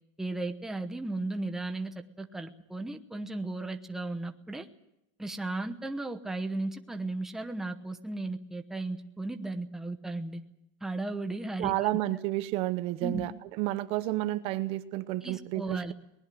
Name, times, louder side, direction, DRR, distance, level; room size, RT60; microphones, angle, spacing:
voice 1, 0.2-4.7 5.2-10.4 10.8-11.7 13.0-13.3 15.2-15.9, right 2 dB, 5° right, 6 dB, 1.0 m, -35 dB
voice 2, 11.6-13.3 13.6-15.9, right 16 dB, 35° right, 13 dB, 0.8 m, -30 dB
22.0 x 20.0 x 7.7 m, 0.82 s
supercardioid pair, 175°, 16 cm